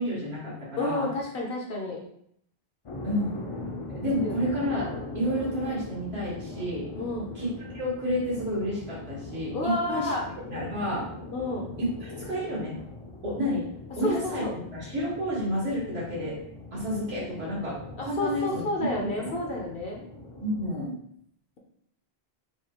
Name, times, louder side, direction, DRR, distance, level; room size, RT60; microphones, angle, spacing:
voice 1, 0.0-1.1 3.0-3.3 3.9-4.9 5.1-6.9 7.3-11.1 11.8-12.8 13.2-13.7 14.0-16.3 16.7-18.9 19.2-19.3 20.4-20.9, equal, 85° right, -8 dB, 1.7 m, -30 dB
voice 2, 0.8-2.0 4.2-4.5 7.0-7.3 9.5-10.2 11.3-11.7 14.0-14.1 14.4-14.5 18.0-20.0, left 2 dB, 65° left, -1 dB, 0.9 m, -30 dB
sound 1, 2.9-20.7, left 2 dB, 40° left, 0.4 m, -41 dB
4.8 x 2.3 x 2.9 m, 0.70 s
omnidirectional pair, 1.0 m